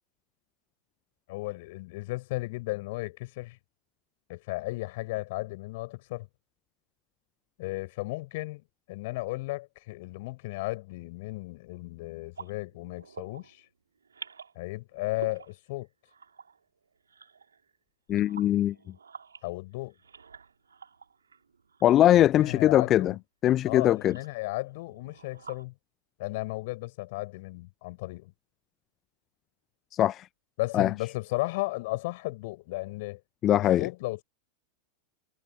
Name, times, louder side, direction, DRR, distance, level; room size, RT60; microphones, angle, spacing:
voice 1, 1.3-3.6 4.3-6.3 7.6-13.6 14.6-15.9 19.4-19.9 22.1-23.2 23.7-25.7 26.2-28.3 30.6-33.2 33.6-34.2, left 21 dB, 50° left, 7.5 m, -35 dB
sound 1, 12.4-13.7 14.0-14.6 14.9-17.8 18.1-22.9 23.5-25.7, right 6 dB, 75° right, 4.2 m, -49 dB
voice 2, 18.1-18.7 21.8-23.1 23.4-24.2 29.9-30.3 30.7-30.9 33.4-33.9, left 12 dB, 30° left, 0.7 m, -21 dB
figure-of-eight pair, 90°, 0 cm